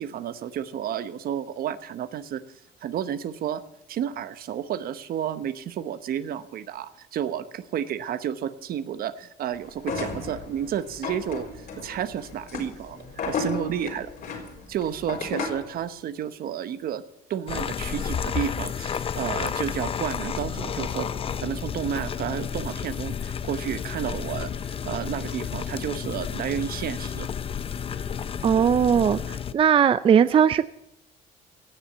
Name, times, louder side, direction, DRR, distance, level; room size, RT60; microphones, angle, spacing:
voice 1, 0.0-2.4 2.8-3.6 3.9-14.1 14.7-17.0 17.3-21.1 21.4-27.3, right 9 dB, 60° right, 12 dB, 1.0 m, -31 dB
sound 1, 9.8-15.7, left 4 dB, 65° left, 4.0 m, -34 dB
sound 2, 17.5-29.5, left 7 dB, 35° left, 0.5 m, -31 dB
voice 2, 28.4-29.2 29.5-30.7, right 8 dB, 30° right, 14 dB, 0.4 m, -18 dB
17.0 x 7.2 x 8.0 m, 0.82 s
cardioid pair, 110°, 17 cm